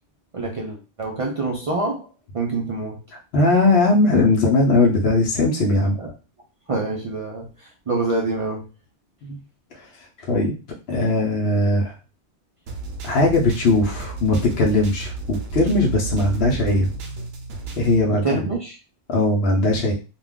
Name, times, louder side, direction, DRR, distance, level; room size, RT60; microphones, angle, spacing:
voice 1, 0.3-3.0 6.0-6.1 6.7-8.7 18.0-18.8, right 3 dB, 55° right, -1 dB, 0.3 m, -26 dB
voice 2, 3.3-6.0 9.2-9.4 10.2-10.5 10.9-11.9 13.0-16.9 17.8-18.4 19.1-19.9, left 2 dB, 65° left, -2 dB, 0.8 m, -19 dB
sound 1, 12.7-18.0, right 4 dB, 85° right, 0.9 m, -32 dB
2.4 x 2.2 x 3.4 m, 0.32 s
omnidirectional pair, 1.2 m